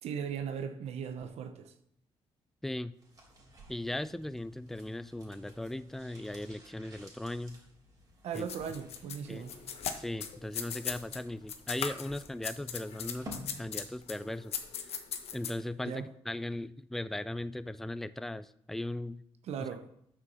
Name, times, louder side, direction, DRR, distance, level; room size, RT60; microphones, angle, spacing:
voice 1, 0.0-1.7 8.2-9.6 15.8-16.1 19.4-19.9, right 7 dB, 75° right, 1.0 m, -38 dB
voice 2, 2.6-2.9 3.7-7.6 8.3-8.5 9.3-9.4 9.9-14.5 15.3-19.2 19.6-19.7, left 1 dB, 5° left, 0.4 m, -38 dB
sound 1, 2.9-14.2 14.4-14.5, equal, 30° right, 3.5 m, -53 dB
sound 2, 8.3-11.2 11.5-15.5, left 8 dB, 70° left, 1.2 m, -39 dB
9.6 x 6.2 x 6.9 m
cardioid pair, 110°, 11 cm